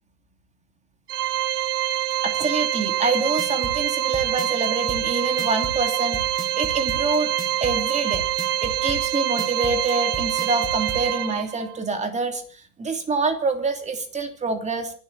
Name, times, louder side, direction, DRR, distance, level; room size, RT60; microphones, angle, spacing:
Organ, 1.1-11.8, right 13 dB, 80° right, 1.0 m, -25 dB
voice 1, 2.2-7.3 7.6-8.2 8.6-14.9, right 3 dB, 15° right, 7 dB, 2.9 m, -26 dB
sound 1, 3.1-11.0, right 2 dB, ahead, 5.2 m, -35 dB
26.0 x 12.5 x 4.1 m, 0.39 s
hypercardioid pair, 115°, 45 cm